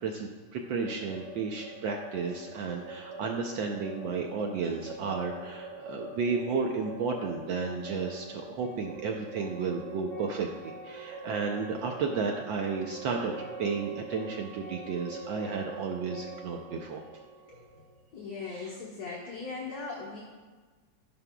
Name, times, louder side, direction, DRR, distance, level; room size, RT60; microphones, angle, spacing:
voice 1, 0.0-13.3 13.6-17.0 18.5-18.7, right 5 dB, 70° right, 2 dB, 1.3 m, -33 dB
sound 1, 0.6-18.4, right 2 dB, 40° right, 1.7 m, -44 dB
voice 2, 18.1-20.2, left 4 dB, 50° left, -5 dB, 1.7 m, -39 dB
12.0 x 10.5 x 2.3 m, 1.4 s
omnidirectional pair, 2.3 m